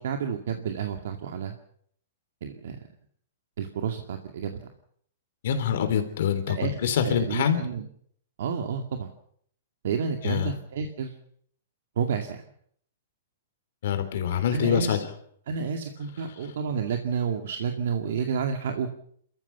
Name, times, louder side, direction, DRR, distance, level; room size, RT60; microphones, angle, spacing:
voice 1, 0.0-1.5 2.4-2.8 3.6-4.5 6.6-7.9 8.4-9.1 9.8-11.1 12.0-12.4 14.5-15.0 15.5-18.9, right 6 dB, 60° right, 5 dB, 2.2 m, -30 dB
voice 2, 5.4-7.6 10.2-10.5 13.8-15.0, left 8 dB, 55° left, 8 dB, 3.7 m, -25 dB
28.5 x 14.5 x 7.1 m, 0.65 s
hypercardioid pair, 175°, 0 cm